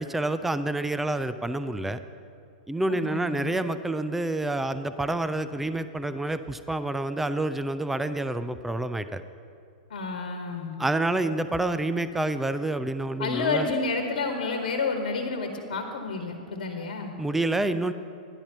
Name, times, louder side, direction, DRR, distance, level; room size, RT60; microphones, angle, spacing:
voice 1, 0.0-2.0 2.7-9.2 10.8-13.7 17.2-17.9, right 2 dB, 5° right, 11 dB, 0.4 m, -28 dB
voice 2, 2.9-3.5 9.9-10.8 13.2-17.1, left 4 dB, 75° left, 4 dB, 1.2 m, -30 dB
11.0 x 10.5 x 4.5 m, 2.5 s
hypercardioid pair, 120°, 4 cm